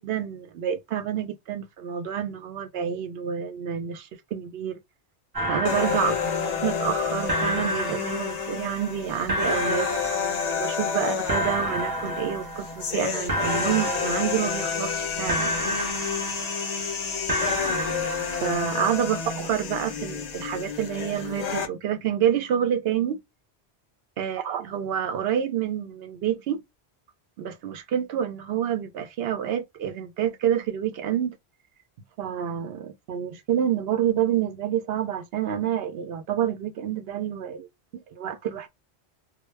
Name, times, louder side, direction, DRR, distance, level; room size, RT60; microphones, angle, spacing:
voice 1, 0.0-4.8 5.5-6.2 6.6-9.9 10.6-15.5 18.3-23.2 24.2-26.6 27.4-31.4 32.2-37.7 37.9-38.7, right 9 dB, 70° right, 0.8 m, -28 dB
sound 1, 5.3-7.0 7.3-8.9 9.3-10.9 11.3-13.0 13.3-15.0 15.3-16.9 17.3-18.9, right 1 dB, 25° right, 0.5 m, -31 dB
sound 2, 5.7-21.7, left 6 dB, 50° left, 0.5 m, -30 dB
2.2 x 2.1 x 3.1 m
omnidirectional pair, 1.1 m